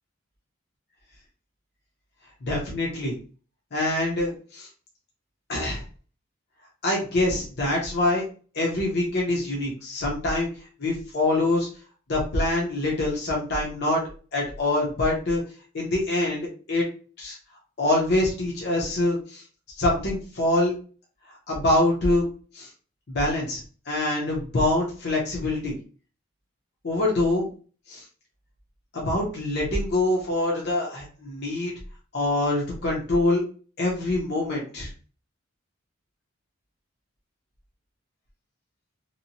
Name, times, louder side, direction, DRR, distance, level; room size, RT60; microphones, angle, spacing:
voice 1, 2.4-3.2 3.7-4.7 5.5-5.8 6.8-8.2 8.5-10.5 10.8-11.7 12.1-14.0 14.3-15.4 15.7-16.9 17.2-17.4 17.8-19.4 19.8-20.7 21.3-22.2 22.5-22.7 23.1-25.8 26.8-27.5 27.9-28.0 28.9-31.7 32.1-33.4 33.8-34.9, left 2 dB, 50° left, -3 dB, 0.7 m, -25 dB
2.8 x 2.1 x 2.6 m, 0.39 s
head